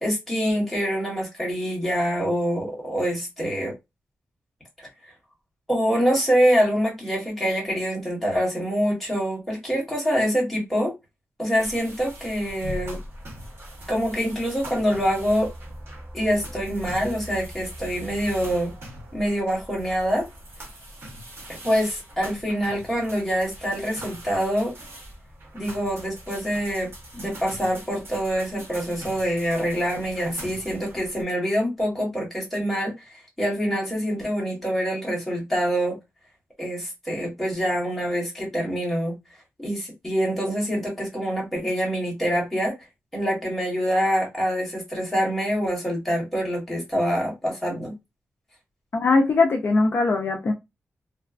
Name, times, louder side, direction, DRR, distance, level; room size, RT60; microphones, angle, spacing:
voice 1, 0.0-3.7 4.8-4.9 5.7-10.9 11.4-13.0 13.9-15.5 16.1-18.7 19.1-20.3 21.5-24.7 25.5-26.9 27.1-36.0 36.6-39.2 39.6-42.7 43.1-47.9, equal, 5° left, 1.3 m, -25 dB
sound 1, 11.6-31.2, right 1 dB, 55° right, 1.1 m, -41 dB
voice 2, 48.9-50.5, left 3 dB, 50° left, 0.4 m, -20 dB
2.9 x 2.2 x 2.4 m
wide cardioid pair, 140°, 5 cm